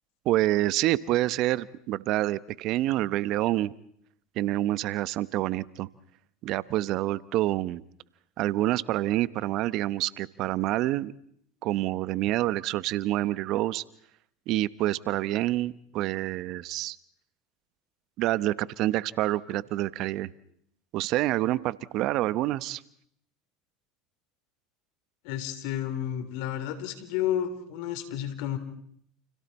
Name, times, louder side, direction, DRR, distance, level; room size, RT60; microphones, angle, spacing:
voice 1, 0.2-3.7 4.4-5.9 6.4-7.8 8.4-11.1 11.6-13.8 14.5-17.0 18.2-20.3 20.9-22.8, right 15 dB, 60° right, 17 dB, 0.9 m, -27 dB
voice 2, 25.2-28.6, left 11 dB, 70° left, 9 dB, 3.5 m, -31 dB
30.0 x 29.5 x 4.3 m, 0.67 s
hypercardioid pair, 85°, 0 cm